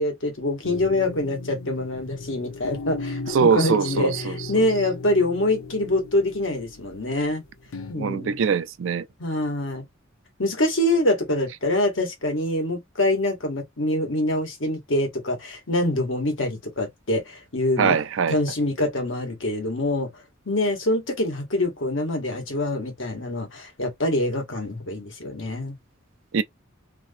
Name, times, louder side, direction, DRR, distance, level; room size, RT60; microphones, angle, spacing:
voice 1, 0.0-7.4 7.9-8.4 9.2-9.8 10.4-18.0 18.3-20.1 20.4-25.7, left 1 dB, 65° left, 1.4 m, -25 dB
sound 1, 0.6-7.9, left 3 dB, 85° left, 0.6 m, -36 dB
voice 2, 3.3-4.6 7.9-9.1 17.8-18.4 26.3-26.4, right 6 dB, 70° right, 0.4 m, -22 dB
3.0 x 2.6 x 2.6 m
head